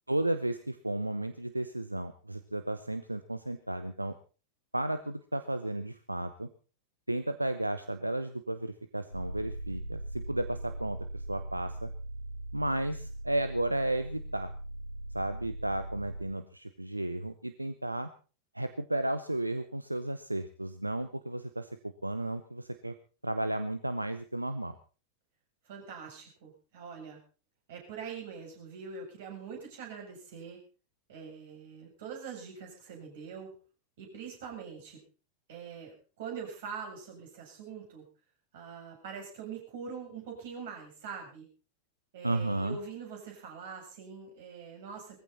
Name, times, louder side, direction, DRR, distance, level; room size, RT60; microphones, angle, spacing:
voice 1, 0.1-4.1 4.7-6.5 7.1-11.9 12.5-14.5 15.1-18.1 18.5-21.7 22.0-22.9 23.2-24.7 42.2-42.8, right 1 dB, 85° right, 11 dB, 0.9 m, -33 dB
sound 1, 9.1-16.2, right 1 dB, 85° left, 2.2 m, -40 dB
voice 2, 25.6-27.2 27.7-30.6 31.1-33.5 34.0-35.0 35.5-38.0 38.5-41.5 42.1-45.2, right 6 dB, 55° right, 1 dB, 7.7 m, -43 dB
20.0 x 15.0 x 4.2 m, 0.36 s
figure-of-eight pair, 90°, 0 cm